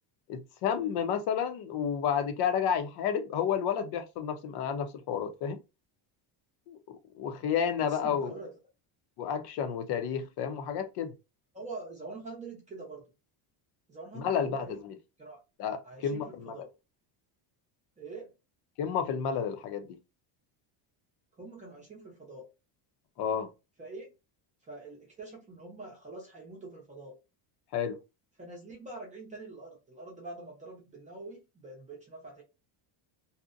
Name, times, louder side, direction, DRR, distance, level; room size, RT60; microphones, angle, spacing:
voice 1, 0.3-5.6 6.7-6.8 7.2-8.3 9.2-11.1 14.1-15.0 15.6-16.5 18.8-20.0 23.2-23.5 27.7-28.0, left 7 dB, 50° left, 0.6 m, -31 dB
voice 2, 7.4-8.6 11.5-13.1 13.9-14.8 15.2-15.4 15.8-16.7 18.0-18.3 21.4-22.5 23.8-24.1 24.7-27.2 28.4-32.4, right 3 dB, 15° right, 0.6 m, -45 dB
2.6 x 2.1 x 2.4 m
cardioid pair, 165°, 50 cm